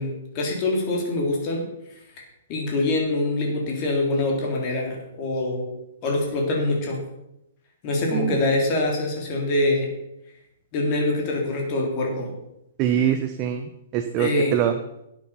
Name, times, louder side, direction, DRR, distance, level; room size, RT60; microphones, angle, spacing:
voice 1, 0.0-1.6 2.5-5.7 6.0-7.0 7.8-9.9 10.7-12.3 14.2-14.5, left 2 dB, 30° left, 0 dB, 3.3 m, -24 dB
voice 2, 12.8-14.7, right 10 dB, 25° right, 7 dB, 0.7 m, -24 dB
12.0 x 8.4 x 5.6 m, 0.85 s
hypercardioid pair, 165°, 0 cm